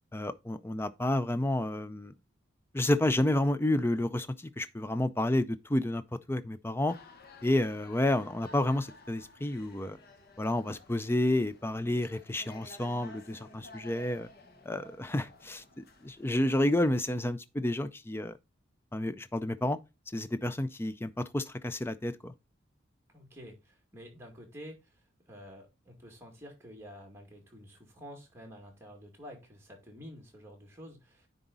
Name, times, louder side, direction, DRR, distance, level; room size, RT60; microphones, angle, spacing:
voice 1, 0.1-2.1 2.7-6.0 6.3-7.0 7.4-10.0 10.4-14.3 14.7-18.4 18.9-19.8 20.1-22.3, left 1 dB, 10° left, 0.4 m, -30 dB
sound 1, 6.9-16.9, left 1 dB, 50° left, 1.1 m, -54 dB
voice 2, 23.1-31.3, equal, 15° right, 2.2 m, -49 dB
9.8 x 4.0 x 4.0 m
head